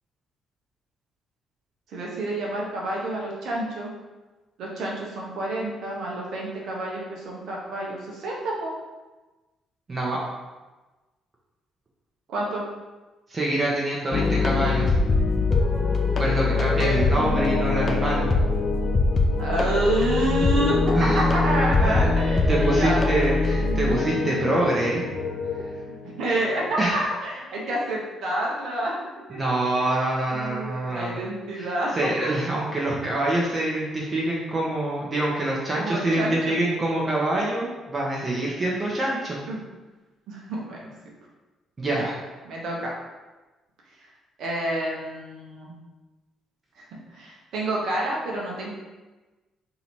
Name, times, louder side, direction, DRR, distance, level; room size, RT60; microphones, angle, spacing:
voice 1, 1.9-3.9 4.6-8.7 12.3-12.6 16.6-17.0 19.4-22.5 22.8-23.0 23.6-24.0 26.0-28.9 29.3-29.4 30.3-32.3 35.1-35.4 35.7-36.5 39.5-39.6 40.3-40.9 41.9-42.1 42.4-42.9 44.4-45.7 46.8-46.9 47.1-48.7, right 1 dB, 60° right, -3 dB, 1.0 m, -28 dB
voice 2, 13.3-14.9 16.2-18.3 20.9-21.2 21.8-22.2 22.5-25.0 26.8-27.0 29.3-31.2 31.6-31.7 31.9-39.4 41.8-42.2, right 1 dB, 30° right, -4 dB, 0.9 m, -25 dB
sound 1, 14.1-26.7, left 3 dB, 40° left, 0.6 m, -23 dB
sound 2, 15.5-25.6, left 2 dB, 15° right, 1.4 m, -32 dB
4.0 x 2.9 x 4.3 m, 1.2 s
figure-of-eight pair, 45°, 0 cm